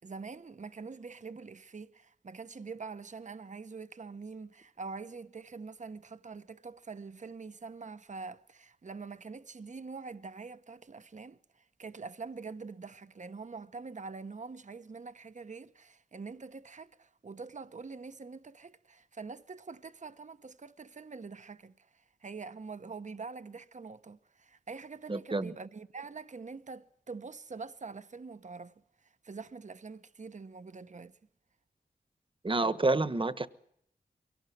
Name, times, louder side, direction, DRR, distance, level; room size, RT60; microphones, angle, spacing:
voice 1, 0.0-31.2, right 4 dB, 50° right, 0.9 m, -45 dB
voice 2, 25.1-25.5 32.4-33.5, right 2 dB, 35° right, 1.3 m, -28 dB
23.5 x 18.0 x 9.4 m
cardioid pair, 50°, 15 cm